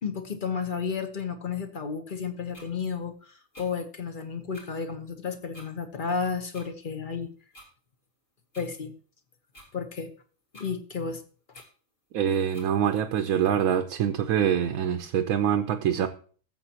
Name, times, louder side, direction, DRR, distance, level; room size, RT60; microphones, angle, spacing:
voice 1, 0.0-7.3 8.6-8.9 9.7-10.1 10.5-11.2, left 5 dB, 45° left, 1.0 m, -32 dB
sound 1, 2.5-2.7 3.5-3.7 4.5-4.7 5.5-5.7 6.5-6.7 7.5-7.7 8.5-8.7 9.5-9.7 10.5-10.7 11.5-11.7 12.5-12.7, equal, 70° left, 3.5 m, -49 dB
voice 2, 12.1-16.1, right 9 dB, 90° right, 1.1 m, -25 dB
16.0 x 7.3 x 2.9 m
omnidirectional pair, 1.4 m